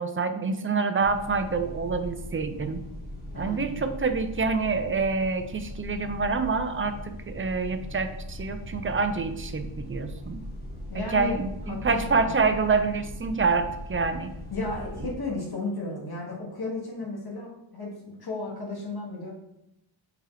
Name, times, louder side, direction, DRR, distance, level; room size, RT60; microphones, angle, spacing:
voice 1, 0.0-2.8 3.4-10.4 10.9-14.3, right 4 dB, 30° right, 8 dB, 0.4 m, -27 dB
sound 1, 1.0-15.1, left 1 dB, 20° left, 1.3 m, -39 dB
voice 2, 3.3-3.8 10.9-11.3 11.7-12.3 14.5-19.3, left 3 dB, 50° left, -2 dB, 1.4 m, -34 dB
4.6 x 2.8 x 3.8 m, 0.86 s
wide cardioid pair, 70°, 50 cm